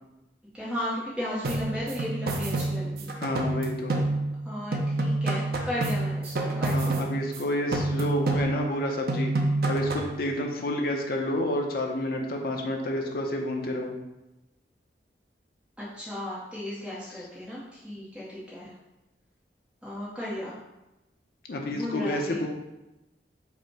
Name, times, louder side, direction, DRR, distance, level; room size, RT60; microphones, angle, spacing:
voice 1, 0.5-3.1 4.4-7.0 15.8-18.7 19.8-20.6 21.7-22.4, left 1 dB, 5° right, -8 dB, 0.7 m, -35 dB
sound 1, 1.4-4.5 4.7-7.4 7.7-8.8 9.1-10.2, right 2 dB, 55° right, 0.5 m, -28 dB
voice 2, 3.2-4.0 6.7-9.3 9.7-14.0 21.5-22.5, left 1 dB, 55° left, 2 dB, 0.6 m, -29 dB
5.1 x 2.1 x 4.6 m, 0.97 s
head